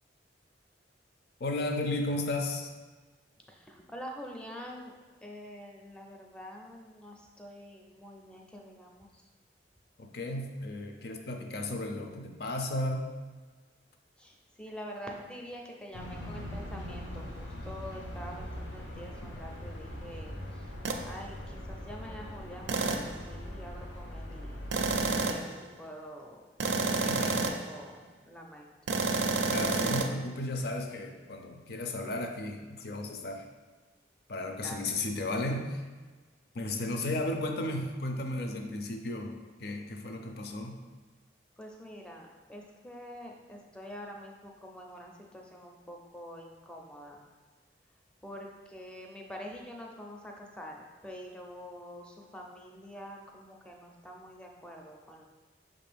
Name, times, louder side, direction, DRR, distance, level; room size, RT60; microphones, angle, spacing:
voice 1, 1.4-2.7 10.0-13.1 27.0-27.4 29.5-33.5 34.3-35.8 36.5-39.3 39.6-40.8, left 2 dB, 60° left, 4 dB, 0.5 m, -34 dB
voice 2, 3.5-5.0 5.2-9.2 14.2-20.7 21.0-24.7 25.3-25.5 25.8-26.5 26.8-27.4 27.7-28.9 34.6-34.8 41.6-47.2 48.2-55.2, equal, 5° left, 0 dB, 0.4 m, -46 dB
sound 1, 15.9-25.2, left 1 dB, 85° left, 0.8 m, -41 dB
sound 2, 20.8-21.1 22.7-23.2 24.7-25.5 26.6-27.7 28.9-30.1, right 4 dB, 80° right, 0.4 m, -29 dB
6.2 x 2.5 x 3.4 m, 1.4 s
head